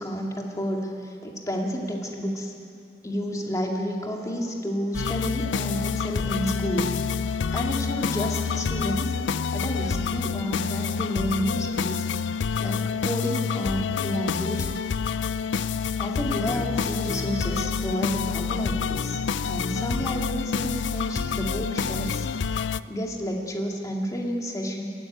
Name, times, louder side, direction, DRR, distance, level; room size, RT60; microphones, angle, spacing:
voice 1, 0.0-2.5 3.0-6.9 7.5-9.1 9.5-12.1 12.6-14.7 16.0-22.3 22.9-24.9, equal, 20° left, 0 dB, 2.2 m, -30 dB
sound 1, 4.9-22.8, left 6 dB, 80° left, 0.5 m, -28 dB
22.0 x 15.5 x 9.2 m, 2.5 s
head